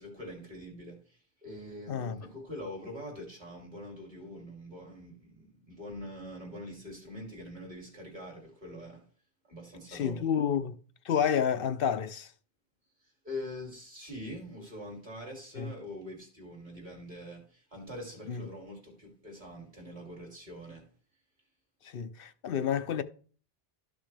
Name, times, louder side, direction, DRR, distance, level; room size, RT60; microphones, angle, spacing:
voice 1, 0.0-9.0 9.5-10.3 13.2-20.9, left 1 dB, 45° right, 3.1 m, -44 dB
voice 2, 9.9-10.8 11.0-12.3 15.6-15.7 18.3-18.4 21.8-23.0, left 8 dB, 65° left, 0.8 m, -30 dB
13.0 x 6.2 x 3.3 m
omnidirectional pair, 1.0 m